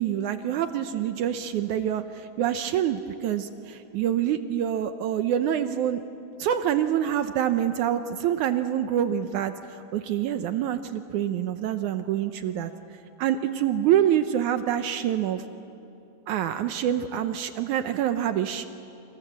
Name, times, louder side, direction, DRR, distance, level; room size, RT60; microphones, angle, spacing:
voice 1, 0.0-2.0 2.4-6.0 6.4-9.5 9.9-12.7 13.2-15.4 16.3-18.7, right 10 dB, 75° right, 9 dB, 2.2 m, -26 dB
29.0 x 27.5 x 7.5 m, 2.8 s
omnidirectional pair, 3.7 m